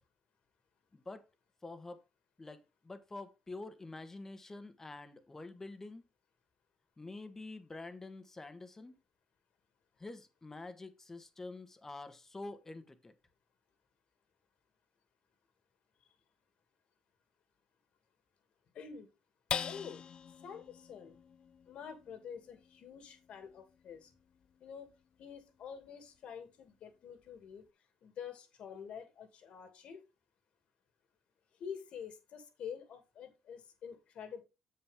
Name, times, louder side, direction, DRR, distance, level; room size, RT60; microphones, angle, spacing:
voice 1, 0.9-1.2 1.6-2.0 2.4-6.0 7.0-8.9 10.0-13.1, left 2 dB, 20° left, 1.3 m, -47 dB
voice 2, 18.7-19.1 19.6-20.0 20.4-21.2 21.7-24.1 24.6-24.9 25.2-27.6 28.0-30.0 31.5-34.4, left 7 dB, 65° left, 2.3 m, -47 dB
sound 1, 19.5-26.2 26.7-26.8 27.2-27.7, left 8 dB, 50° left, 0.4 m, -45 dB
7.5 x 7.2 x 3.5 m
cardioid pair, 100°, 2 cm